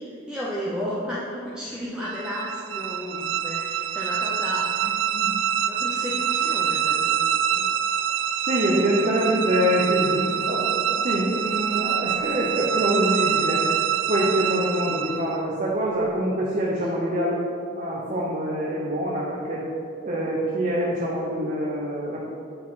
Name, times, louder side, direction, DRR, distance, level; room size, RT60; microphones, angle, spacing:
voice 1, 0.0-4.9 5.7-7.7, equal, 5° right, -8 dB, 0.6 m, -33 dB
sound 1, 2.0-15.4, right 9 dB, 65° right, 0.3 m, -25 dB
voice 2, 4.8-5.4 5.7-5.8 8.4-13.6 14.1-19.6 20.0-22.2, equal, 40° right, -5 dB, 0.8 m, -25 dB
8.5 x 4.1 x 4.1 m, 2.4 s
head